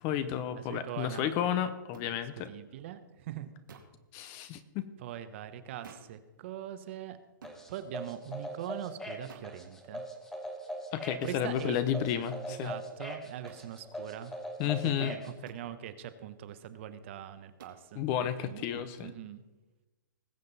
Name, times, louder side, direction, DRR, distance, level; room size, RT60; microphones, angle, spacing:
voice 1, 0.0-2.5 4.1-4.9 10.9-12.7 14.6-15.1 18.0-19.1, left 10 dB, 25° left, 12 dB, 0.6 m, -32 dB
voice 2, 0.5-1.3 2.0-2.2 2.5-3.5 5.0-7.2 7.7-10.0 11.2-11.8 12.5-14.3 14.8-18.6 19.0-19.4, right 11 dB, 35° right, 12 dB, 0.8 m, -42 dB
sound 1, 1.9-2.1 3.7-4.0 5.8-6.2 7.4-7.6 9.3-9.6 11.2-11.4 13.5-13.7 15.4-15.7 17.6-17.8, right 6 dB, 85° right, 2.3 m, -52 dB
sound 2, 7.4-15.3, equal, 5° left, 1.0 m, -41 dB
20.0 x 7.4 x 4.0 m, 1.1 s
hypercardioid pair, 165°, 11 cm